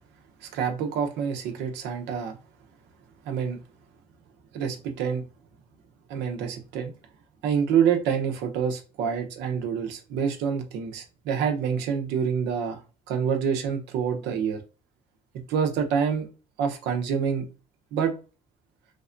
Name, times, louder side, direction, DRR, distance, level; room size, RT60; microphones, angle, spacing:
voice 1, 0.5-2.4 3.3-3.6 4.5-5.2 6.1-6.9 7.4-12.8 13.1-14.6 15.5-16.3 16.6-17.5 17.9-18.1, right 7 dB, 85° right, 5 dB, 0.7 m, -27 dB
3.4 x 2.2 x 2.5 m, 0.32 s
cardioid pair, 110°, 17 cm